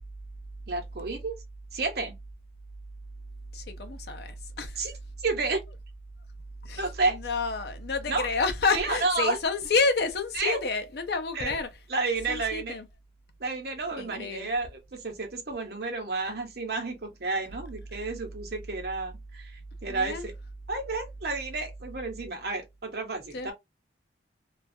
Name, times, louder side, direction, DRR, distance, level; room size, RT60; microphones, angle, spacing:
voice 1, 0.7-1.4 1.7-2.1 4.8-4.9 5.2-5.6 6.8-7.2 8.1-8.3 8.7-9.4 10.3-10.6 11.3-11.5 11.9-12.8 13.4-20.3 20.7-23.5, right 3 dB, 55° right, 0.8 m, -31 dB
voice 2, 3.5-4.8 6.6-6.8 7.1-11.7 12.3-12.8 14.0-14.5 19.9-20.2 23.3-23.5, left 4 dB, 60° left, 0.5 m, -29 dB
2.4 x 2.3 x 2.5 m
head